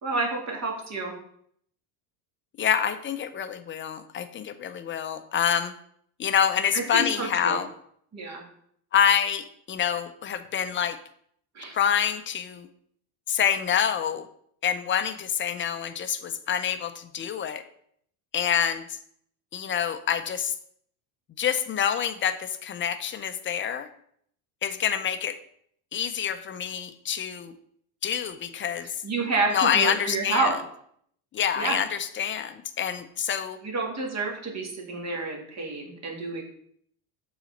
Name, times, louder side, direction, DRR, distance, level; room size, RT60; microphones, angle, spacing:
voice 1, 0.0-1.2 6.7-7.6 8.1-8.4 11.6-11.7 29.0-30.6 31.5-31.8 33.6-36.4, right 3 dB, 35° right, 1 dB, 2.0 m, -29 dB
voice 2, 2.6-5.7 6.2-7.7 8.9-11.0 11.7-12.7 13.3-14.3 14.6-17.6 18.3-18.8 19.5-20.5 21.4-23.9 24.6-25.4 25.9-27.5 28.0-28.9 29.5-30.5 31.3-33.6, left 8 dB, 25° left, 10 dB, 0.5 m, -26 dB
6.2 x 4.0 x 6.3 m, 0.66 s
cardioid pair, 120°, 44 cm